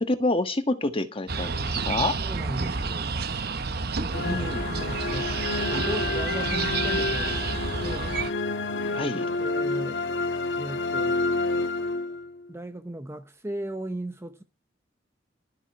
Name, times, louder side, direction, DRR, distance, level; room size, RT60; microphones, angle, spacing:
voice 1, 0.0-2.2 4.1-4.6 8.9-9.2, left 2 dB, 30° left, 1.5 m, -27 dB
sound 1, 1.3-8.3, right 4 dB, 60° right, 0.9 m, -30 dB
voice 2, 2.2-3.2 3.8-5.3 5.7-8.2 9.4-10.0 10.6-11.2 12.5-14.4, right 1 dB, 15° right, 0.7 m, -37 dB
sound 2, 4.1-12.5, left 3 dB, 90° left, 1.3 m, -29 dB
13.0 x 6.9 x 7.8 m
head